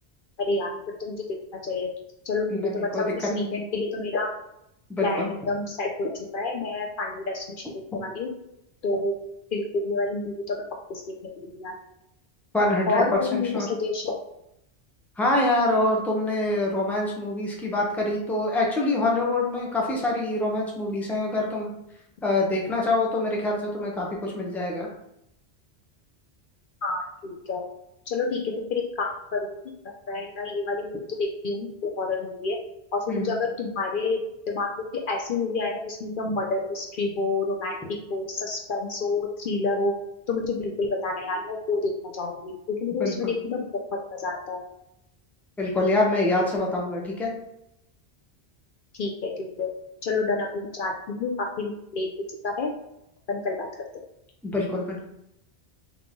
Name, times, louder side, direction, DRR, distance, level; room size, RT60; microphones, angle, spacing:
voice 1, 0.4-0.7 1.0-1.2 1.5-1.9 2.3-4.3 5.0-7.4 7.9-8.3 8.8-9.1 9.5-10.6 10.9-11.7 12.9-14.2 26.8-27.6 28.1-29.5 30.1-32.6 32.9-34.2 34.5-34.7 35.1-37.8 38.1-39.9 40.3-43.6 44.1-44.6 49.0-49.7 50.0-52.1 52.4-52.7 53.3-53.7, left 3 dB, 60° left, 1 dB, 0.7 m, -28 dB
voice 2, 2.5-3.5 4.9-5.3 12.5-13.0 13.3-13.7 15.2-21.7 22.2-24.9 33.1-33.3 43.0-43.3 45.6-47.3 54.4-55.0, left 2 dB, ahead, -2 dB, 0.7 m, -25 dB
3.8 x 2.9 x 3.6 m, 0.82 s
omnidirectional pair, 1.1 m